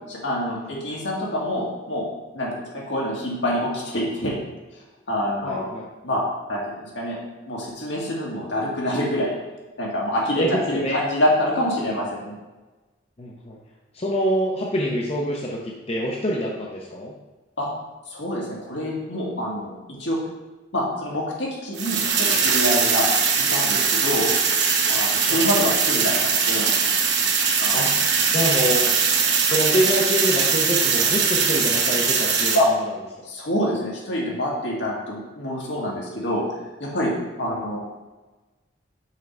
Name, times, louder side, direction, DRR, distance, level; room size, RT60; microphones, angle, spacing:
voice 1, 0.1-2.1 2.3-4.4 5.1-5.7 6.0-6.2 6.5-7.2 7.5-9.4 9.8-12.3 17.6-17.7 18.1-20.2 20.7-23.1 23.4-24.3 24.9-26.7 27.6-27.9 32.5-32.7 33.2-36.4 36.8-37.8, left 1 dB, 75° left, -3 dB, 2.0 m, -26 dB
voice 2, 5.4-5.8 10.4-11.0 13.2-13.6 13.9-17.1 25.3-25.4 27.7-27.9 28.3-28.9 29.5-32.6 37.4-37.6, equal, 30° left, -2 dB, 0.7 m, -25 dB
sound 1, 21.7-32.6, right 5 dB, 65° right, 1.0 m, -21 dB
5.6 x 4.6 x 5.3 m, 1.2 s
head